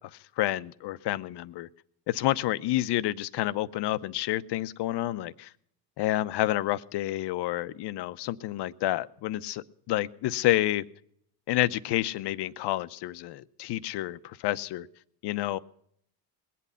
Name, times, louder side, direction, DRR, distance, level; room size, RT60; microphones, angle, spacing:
voice 1, 0.4-1.7 2.1-5.5 6.0-10.8 11.5-14.9 15.2-15.6, left 15 dB, 55° left, 15 dB, 0.7 m, -29 dB
21.0 x 8.5 x 5.6 m, 0.69 s
supercardioid pair, 75°, 50 cm